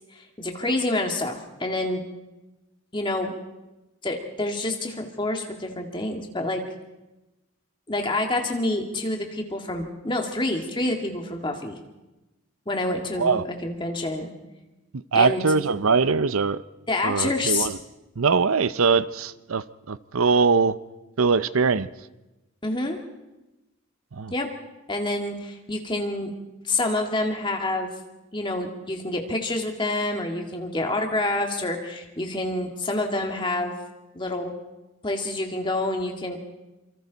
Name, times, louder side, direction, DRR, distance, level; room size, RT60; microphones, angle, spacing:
voice 1, 0.2-2.0 2.9-3.3 4.0-6.6 7.9-11.8 12.7-14.3 15.1-15.4 16.9-17.7 22.6-23.0 24.3-24.5 24.9-26.3 26.7-27.9 28.3-33.7 34.2-34.5 35.0-36.4, left 2 dB, 20° left, 2.1 m, -27 dB
voice 2, 15.1-16.6 17.0-17.8 18.2-20.8 21.2-21.9 24.1-24.3, right 5 dB, 75° right, 0.7 m, -22 dB
26.0 x 24.5 x 4.1 m
head